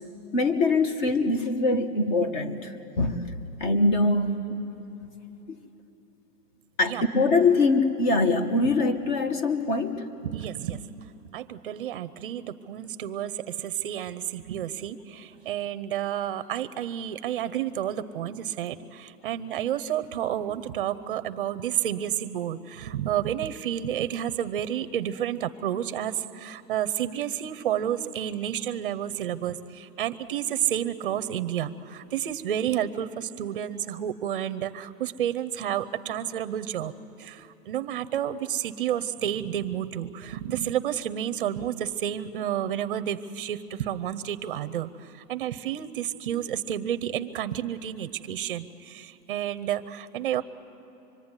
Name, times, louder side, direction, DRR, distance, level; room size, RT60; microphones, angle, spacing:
voice 1, 0.3-3.2 3.6-4.6 6.8-10.0, left 3 dB, 30° left, 9 dB, 1.3 m, -23 dB
voice 2, 10.2-10.8 11.2-36.9 37.2-50.4, right 10 dB, 35° right, 11 dB, 0.7 m, -30 dB
25.0 x 22.0 x 9.8 m, 3.0 s
hypercardioid pair, 170°, 47 cm